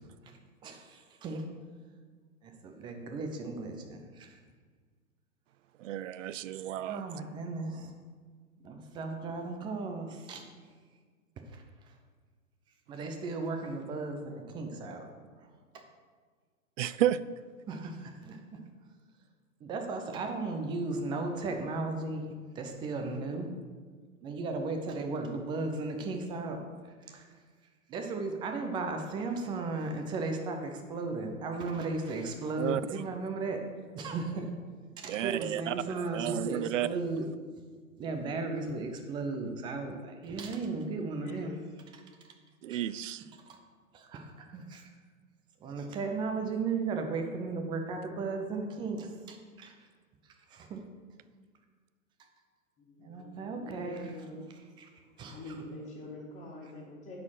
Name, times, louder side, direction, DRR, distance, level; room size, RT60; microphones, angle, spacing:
voice 1, 0.6-1.5 2.4-4.4 6.9-7.9 8.6-10.4 11.5-11.6 12.9-15.1 15.7-15.8 17.7-18.6 19.6-23.5 24.2-26.6 27.1-27.3 27.9-33.6 33.9-34.5 35.0-37.3 38.0-41.6 42.7-42.8 43.5-43.6 43.9-44.9 45.6-49.7 50.5-50.8 53.0-54.1 54.8-54.9 55.2-55.4, right 3 dB, 10° right, 4 dB, 0.5 m, -36 dB
voice 2, 5.8-7.0 16.8-17.2 32.6-33.0 35.1-36.9 42.6-43.2, right 12 dB, 60° right, 17 dB, 0.5 m, -32 dB
voice 3, 40.9-41.6 52.8-54.7 55.3-57.2, left 2 dB, 15° left, -5 dB, 2.1 m, -46 dB
9.6 x 4.3 x 5.6 m, 1.5 s
hypercardioid pair, 130°, 42 cm